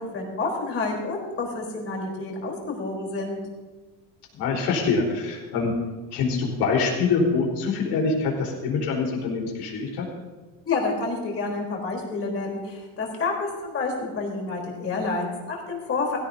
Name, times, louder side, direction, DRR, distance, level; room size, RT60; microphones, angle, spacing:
voice 1, 0.0-3.4 10.7-16.2, left 3 dB, 30° left, -1 dB, 3.8 m, -29 dB
voice 2, 4.4-5.7 6.1-10.1, left 4 dB, 65° left, -1 dB, 4.3 m, -25 dB
17.5 x 16.5 x 2.8 m, 1.3 s
cardioid pair, 150°, 44 cm